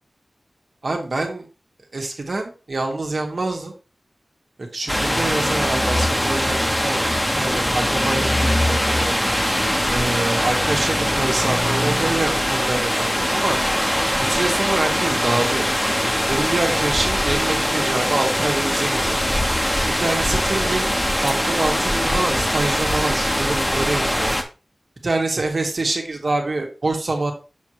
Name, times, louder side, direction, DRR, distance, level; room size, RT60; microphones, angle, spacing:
voice 1, 0.8-1.4 1.9-3.7 4.6-9.2 9.9-13.6 14.2-15.7 16.3-19.2 20.0-20.9 21.2-24.3 25.0-27.3, right 2 dB, 60° right, 2 dB, 1.6 m, -25 dB
sound 1, 4.9-24.4, equal, 5° left, 0.9 m, -21 dB
7.0 x 6.4 x 3.0 m, 0.32 s
wide cardioid pair, 70°, 0 cm